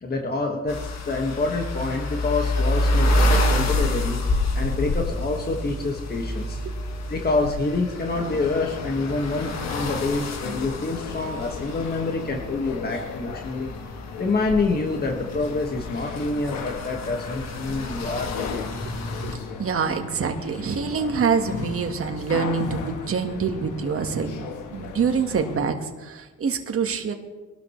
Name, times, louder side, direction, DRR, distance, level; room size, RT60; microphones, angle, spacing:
voice 1, 0.0-4.2 4.5-6.6 7.1-13.7 14.2-18.7, left 3 dB, 30° left, 1 dB, 1.8 m, -27 dB
sound 1, 0.7-19.4, left 1 dB, 60° left, 1.9 m, -28 dB
sound 2, 8.1-25.6, left 5 dB, 85° left, 1.5 m, -37 dB
voice 2, 19.6-27.1, right 6 dB, 45° right, 5 dB, 1.6 m, -26 dB
21.0 x 12.5 x 3.2 m, 1.2 s
cardioid pair, 90°, 30 cm